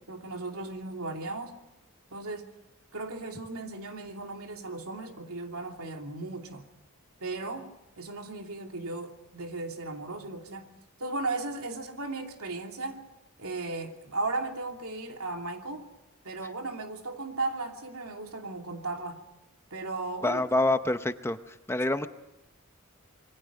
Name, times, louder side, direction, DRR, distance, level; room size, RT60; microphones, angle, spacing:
voice 1, 0.0-1.6 2.1-2.5 2.9-6.7 7.2-10.7 11.0-13.0 13.4-15.9 16.2-19.2 19.7-20.4, right 2 dB, 90° right, 2.9 m, -36 dB
voice 2, 20.2-22.1, left 2 dB, 10° left, 0.8 m, -27 dB
27.0 x 23.0 x 5.2 m
head